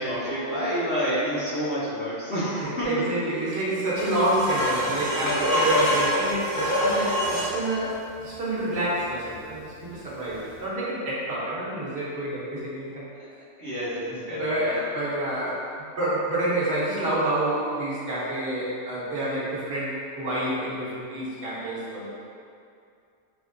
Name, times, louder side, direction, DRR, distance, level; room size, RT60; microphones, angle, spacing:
voice 1, 0.0-3.0 13.2-13.3 13.6-14.8, equal, 80° left, -18 dB, 1.7 m, -28 dB
voice 2, 2.5-13.1 14.1-15.6 16.0-22.2, right 1 dB, 55° right, -9 dB, 1.2 m, -28 dB
sound 1, 3.9-7.5 10.4-10.5, equal, 20° right, 0.8 m, -25 dB
3.6 x 3.5 x 2.5 m, 2.4 s
omnidirectional pair, 1.3 m